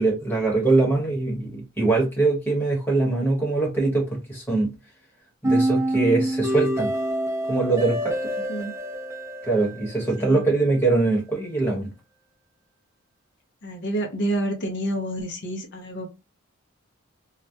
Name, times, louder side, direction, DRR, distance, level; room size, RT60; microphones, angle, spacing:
voice 1, 0.0-4.7 5.4-6.9 7.5-8.3 9.4-11.9, right 3 dB, 10° left, 1.0 m, -22 dB
sound 1, 5.4-10.5, right 1 dB, 15° right, 0.5 m, -26 dB
voice 2, 13.6-16.1, right 1 dB, 55° left, 0.6 m, -28 dB
2.3 x 2.0 x 2.7 m
head